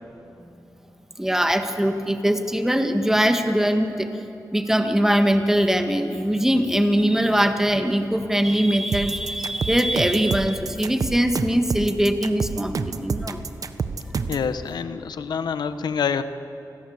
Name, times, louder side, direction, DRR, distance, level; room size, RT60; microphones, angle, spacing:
voice 1, 1.2-4.2 4.5-12.7 13.0-13.5, equal, 5° right, 6 dB, 1.8 m, -21 dB
sound 1, 8.9-14.5, right 5 dB, 60° right, 1.2 m, -28 dB
voice 2, 14.3-16.2, left 6 dB, 85° left, 11 dB, 1.1 m, -26 dB
28.5 x 21.0 x 8.1 m, 2.8 s
wide cardioid pair, 115°, 7 cm